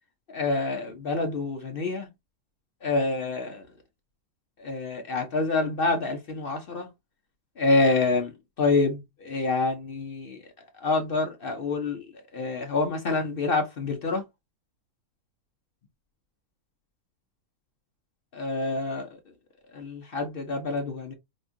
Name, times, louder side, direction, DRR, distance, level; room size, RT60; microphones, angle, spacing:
voice 1, 0.3-2.1 2.8-3.6 4.6-6.9 7.6-8.3 8.6-10.4 10.8-12.1 12.3-14.2 18.3-19.1 19.7-21.1, left 3 dB, 50° left, 0.7 m, -27 dB
5.1 x 2.3 x 2.5 m
omnidirectional pair, 1.6 m